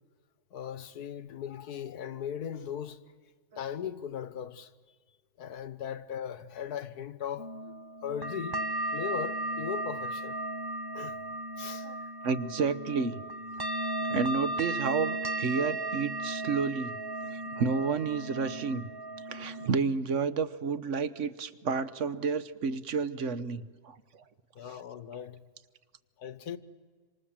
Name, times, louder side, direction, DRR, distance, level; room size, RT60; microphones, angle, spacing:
voice 1, 0.5-3.0 3.6-4.7 5.4-7.7 8.0-8.6 8.9-10.4 10.9-11.2 11.6-11.9 24.6-25.4 26.2-26.6, left 8 dB, 80° left, 1.6 m, -38 dB
sound 1, 7.4-19.7, right 1 dB, 25° right, 0.6 m, -35 dB
voice 2, 12.2-13.2 14.1-16.9 17.3-18.9 19.3-24.2 24.6-24.8, right 5 dB, 55° right, 1.2 m, -31 dB
26.5 x 26.5 x 7.4 m
omnidirectional pair, 1.7 m